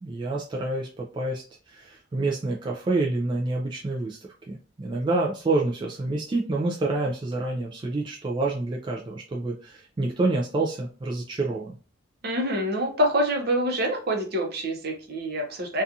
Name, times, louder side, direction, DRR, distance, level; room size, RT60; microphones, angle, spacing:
voice 1, 0.0-4.2 4.5-11.7, right 2 dB, 25° right, -2 dB, 0.3 m, -28 dB
voice 2, 12.2-15.8, equal, 55° right, 2 dB, 0.7 m, -26 dB
2.5 x 2.3 x 2.7 m, 0.36 s
head